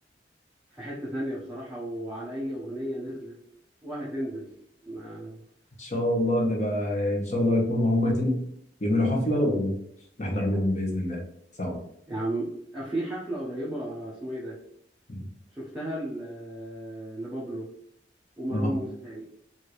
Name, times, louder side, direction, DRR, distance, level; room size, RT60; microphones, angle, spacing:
voice 1, 0.7-3.3 3.8-4.5 4.8-5.4 12.1-14.6 15.5-17.7 18.4-19.3, right 1 dB, 5° right, -9 dB, 1.0 m, -34 dB
voice 2, 5.8-8.4 8.8-9.7 10.2-11.2 11.6-11.8 15.1-15.2 18.5-18.8, left 1 dB, 40° left, 0 dB, 1.1 m, -25 dB
4.9 x 2.9 x 3.1 m, 0.70 s
head